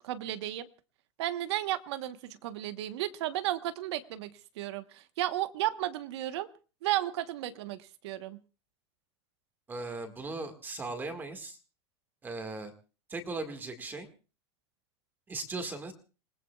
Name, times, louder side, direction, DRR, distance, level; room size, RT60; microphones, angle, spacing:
voice 1, 0.0-0.7 1.2-6.5 6.8-7.8 8.0-8.4, right 14 dB, 75° right, 11 dB, 1.2 m, -33 dB
voice 2, 9.7-11.6 12.2-12.7 13.1-14.1 15.3-15.9, right 3 dB, 15° right, 6 dB, 1.8 m, -38 dB
28.0 x 19.0 x 2.4 m, 0.34 s
supercardioid pair, 165°, 14 cm